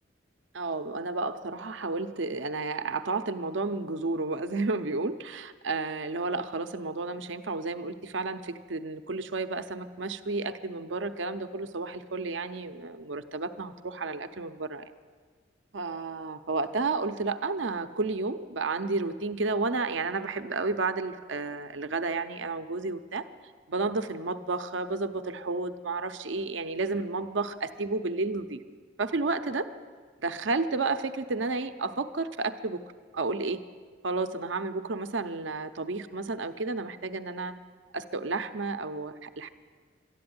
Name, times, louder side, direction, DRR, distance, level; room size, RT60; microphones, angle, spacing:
voice 1, 0.5-14.9 15.7-23.2 23.7-28.6 29.0-29.7 30.2-32.8 33.1-33.6 34.0-37.5 37.9-39.5, right 3 dB, 80° right, 9 dB, 0.7 m, -31 dB
12.5 x 11.5 x 9.5 m, 1.5 s
head